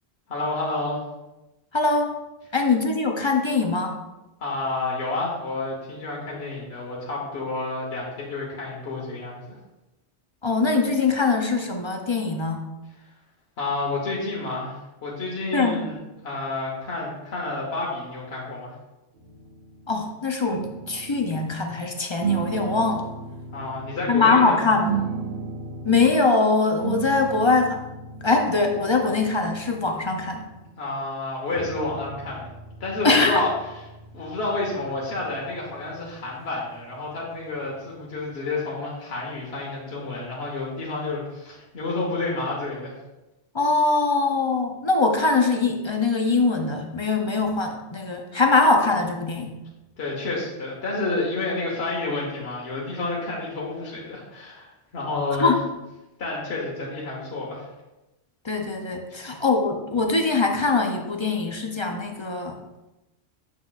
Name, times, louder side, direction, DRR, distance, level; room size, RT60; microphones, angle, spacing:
voice 1, 0.3-1.0 4.4-9.6 13.6-16.0 16.2-18.7 23.5-24.8 30.7-32.5 32.8-33.5 34.1-42.9 50.0-55.5 56.2-57.7 59.1-59.4, left 2 dB, 70° left, -3 dB, 1.4 m, -30 dB
voice 2, 1.7-2.1 2.5-4.0 10.4-12.6 15.5-15.8 19.9-23.1 24.1-24.9 25.8-27.8 28.2-30.4 33.0-33.4 43.5-49.5 55.4-55.6 58.4-62.5, left 3 dB, 35° left, 3 dB, 0.5 m, -22 dB
sound 1, 19.1-20.1 20.4-21.8 22.2-24.2 24.8-26.2 26.8-30.7 31.5-37.9, right 6 dB, 60° right, 1.6 m, -36 dB
7.3 x 6.0 x 2.4 m, 1.0 s
omnidirectional pair, 1.1 m